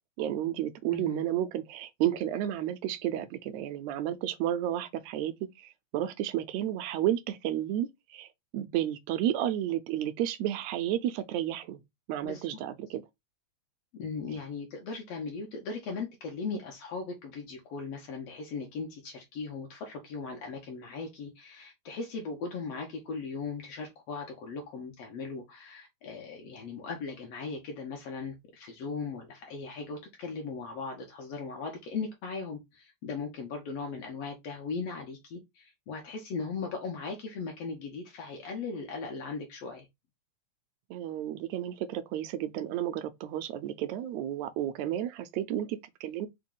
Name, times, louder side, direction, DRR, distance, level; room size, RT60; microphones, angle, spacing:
voice 1, 0.2-11.8 12.1-13.0 40.9-46.3, right 11 dB, 80° right, 1.7 m, -32 dB
voice 2, 0.9-1.2 12.2-12.4 13.9-39.9, left 4 dB, 70° left, 1.6 m, -38 dB
4.8 x 2.2 x 3.7 m
omnidirectional pair, 3.4 m